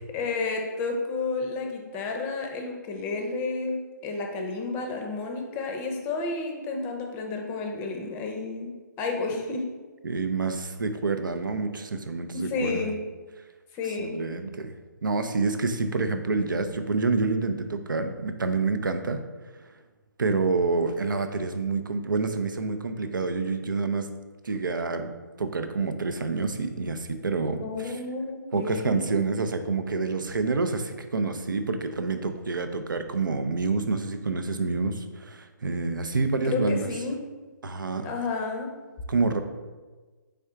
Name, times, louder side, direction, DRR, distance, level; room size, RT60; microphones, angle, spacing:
voice 1, 0.1-3.8 4.0-9.7 12.3-13.0 13.7-14.2 27.6-29.0 36.4-37.2 38.0-38.7, left 3 dB, 20° left, 3 dB, 0.6 m, -31 dB
voice 2, 10.0-12.8 14.0-14.7 15.0-19.2 20.2-24.1 24.4-25.1 25.4-28.0 28.5-36.9 37.6-38.1 39.1-39.4, right 4 dB, 85° right, 8 dB, 0.5 m, -27 dB
4.3 x 3.4 x 3.6 m, 1.3 s
hypercardioid pair, 145°, 11 cm